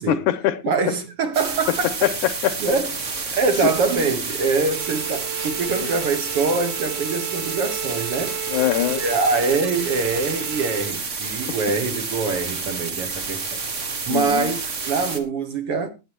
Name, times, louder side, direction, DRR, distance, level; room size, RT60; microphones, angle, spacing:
voice 1, 0.1-0.6 2.0-2.6 3.6-3.7 8.5-9.0 14.1-14.5, left 12 dB, 75° left, 2.2 m, -22 dB
voice 2, 0.6-2.1 2.6-2.9 3.3-8.4 9.0-13.6 14.1-15.9, right 4 dB, 55° right, 2.0 m, -24 dB
sound 1, 1.3-15.2, right 4 dB, 40° right, 1.1 m, -29 dB
Bowed string instrument, 4.6-11.0, right 15 dB, 85° right, 2.5 m, -35 dB
19.0 x 9.5 x 3.0 m
omnidirectional pair, 3.7 m